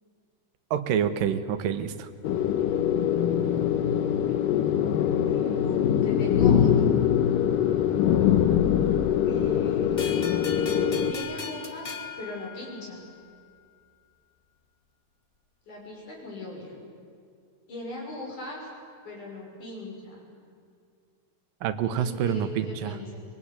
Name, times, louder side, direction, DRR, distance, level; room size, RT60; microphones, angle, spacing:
voice 1, 0.7-2.1 21.6-22.9, right 8 dB, 85° right, 11 dB, 2.8 m, -27 dB
sound 1, 2.2-11.1, left 9 dB, 90° left, 2.8 m, -23 dB
voice 2, 5.0-7.0 9.3-10.4 11.1-13.0 15.7-16.7 17.7-18.6 19.0-20.2 21.8-23.2, left 1 dB, 65° left, -2 dB, 8.2 m, -39 dB
sound 2, 10.0-13.2, left 5 dB, 40° left, 0.8 m, -39 dB
24.0 x 22.5 x 10.0 m, 2.3 s
omnidirectional pair, 3.8 m